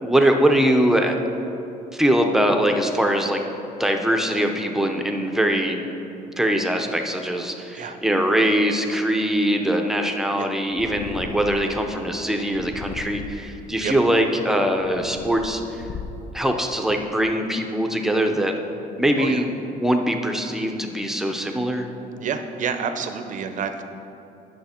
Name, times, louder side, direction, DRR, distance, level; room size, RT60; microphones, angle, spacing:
voice 1, 0.0-1.2 1.9-3.4 3.8-5.8 6.4-15.6 16.3-18.6 19.0-19.5 19.8-21.9, right 1 dB, ahead, 4 dB, 0.7 m, -22 dB
Purr, 10.7-11.8 12.5-13.6 14.3-16.4, left 6 dB, 50° left, 0.6 m, -37 dB
voice 2, 22.2-23.9, right 6 dB, 50° right, 7 dB, 0.7 m, -28 dB
10.5 x 6.2 x 4.4 m, 2.8 s
cardioid pair, 110°, 17 cm